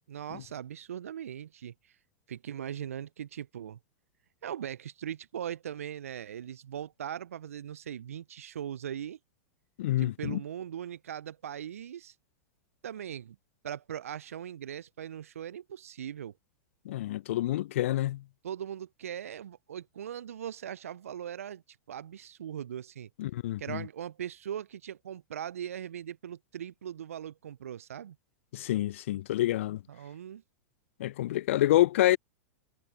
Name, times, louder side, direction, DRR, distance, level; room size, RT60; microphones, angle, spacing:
voice 1, 0.1-1.7 2.3-3.8 4.4-9.2 10.0-12.1 12.8-13.4 13.6-16.3 18.4-21.6 21.9-23.1 23.6-28.2 29.9-30.4, right 9 dB, 75° right, 0.4 m, -40 dB
voice 2, 9.8-10.4 16.9-18.2 23.2-23.8 28.5-29.8 31.0-32.2, left 14 dB, 65° left, 0.4 m, -27 dB
hypercardioid pair, 100°, 8 cm